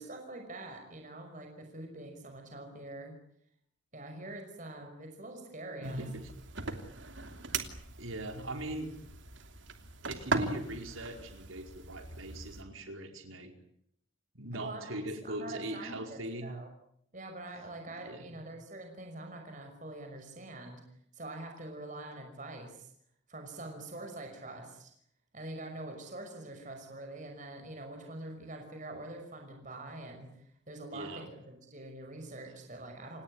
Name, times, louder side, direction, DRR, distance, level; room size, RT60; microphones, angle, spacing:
voice 1, 0.0-3.2 3.9-6.1 14.5-15.0 15.2-16.7 17.1-20.8 21.1-22.9 23.3-24.9 25.3-33.2, right 2 dB, 40° right, 4 dB, 5.8 m, -45 dB
sound 1, 5.8-12.6, right 3 dB, 65° right, 2.9 m, -39 dB
voice 2, 5.8-6.3 8.0-8.9 10.1-13.5 14.3-16.5 18.0-18.4 30.9-31.3, right 1 dB, 80° right, 5 dB, 4.9 m, -40 dB
29.5 x 18.0 x 9.9 m, 0.71 s
head